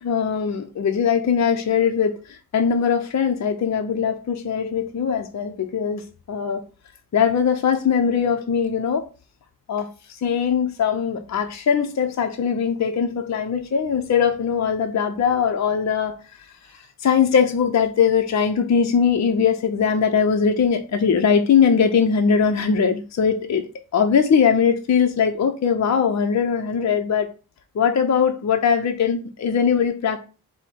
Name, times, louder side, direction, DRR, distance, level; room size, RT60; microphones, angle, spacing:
voice 1, 0.0-6.6 7.1-9.1 9.7-9.9 10.2-16.2 17.0-27.3 27.7-30.2, left 6 dB, 50° left, 5 dB, 0.6 m, -21 dB
4.4 x 2.1 x 4.3 m, 0.33 s
cardioid pair, 50°, 36 cm